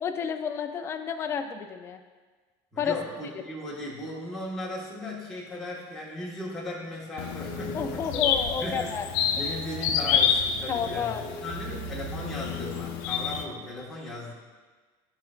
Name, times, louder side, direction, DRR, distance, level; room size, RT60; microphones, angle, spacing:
voice 1, 0.0-2.0 2.8-3.0 7.7-9.1 10.7-11.2, left 7 dB, 20° left, 6 dB, 0.4 m, -30 dB
voice 2, 2.7-8.0 8.6-9.0 9.3-14.3, left 1 dB, 5° left, -7 dB, 1.5 m, -37 dB
sound 1, 7.2-13.4, left 7 dB, 70° left, 0.6 m, -29 dB
sound 2, 7.5-12.8, right 2 dB, 30° right, 1.7 m, -40 dB
12.5 x 5.0 x 2.4 m, 1.4 s
cardioid pair, 170°, 12 cm